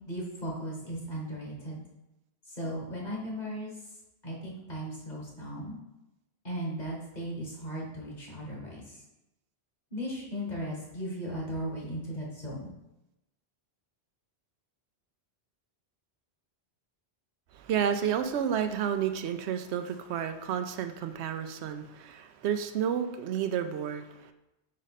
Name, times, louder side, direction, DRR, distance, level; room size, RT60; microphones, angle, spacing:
voice 1, 0.0-1.8 2.5-3.8 4.2-5.8 6.4-9.0 9.9-12.7, equal, 40° left, -3 dB, 1.6 m, -37 dB
voice 2, 17.5-24.3, right 8 dB, 90° right, 8 dB, 0.9 m, -31 dB
5.3 x 5.1 x 4.1 m, 0.93 s
omnidirectional pair, 1.1 m